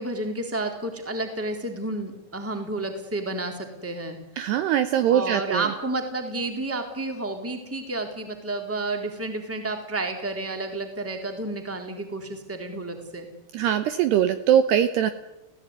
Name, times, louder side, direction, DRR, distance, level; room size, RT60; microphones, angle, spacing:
voice 1, 0.0-4.2 5.1-13.3, right 2 dB, 5° right, 4 dB, 2.8 m, -31 dB
voice 2, 4.4-5.7 13.5-15.1, right 10 dB, 70° right, 9 dB, 2.8 m, -22 dB
29.5 x 17.5 x 9.7 m, 1.0 s
omnidirectional pair, 5.6 m